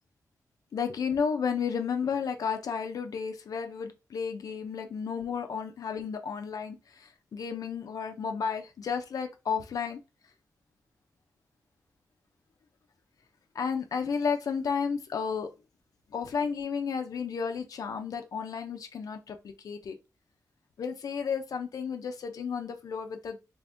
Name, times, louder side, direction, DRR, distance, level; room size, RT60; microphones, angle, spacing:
voice 1, 0.7-10.0 13.5-15.5 16.1-19.9 20.8-23.4, left 6 dB, 75° left, 0.4 m, -32 dB
3.3 x 2.5 x 3.4 m
wide cardioid pair, 160°, 6 cm